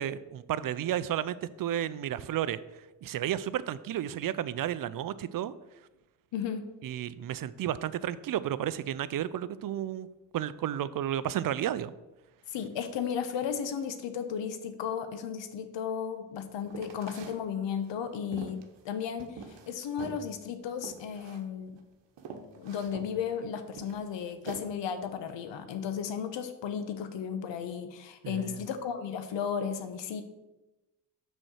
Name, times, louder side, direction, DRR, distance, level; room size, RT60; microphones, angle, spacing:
voice 1, 0.0-2.6 3.0-5.5 6.8-10.1 10.3-11.9 28.2-28.6, right 11 dB, 50° right, 16 dB, 0.5 m, -32 dB
voice 2, 6.3-6.6 12.5-18.6 18.8-19.4 19.7-21.7 22.6-30.2, left 7 dB, 70° left, 9 dB, 1.0 m, -34 dB
sound 1, 16.7-17.4 17.8-19.7 20.0-20.2 20.8-21.4 21.8-21.9 22.2-23.1 23.8-24.6, right 5 dB, 65° right, 1.1 m, -44 dB
6.2 x 4.3 x 6.2 m, 1.0 s
supercardioid pair, 55°, 45 cm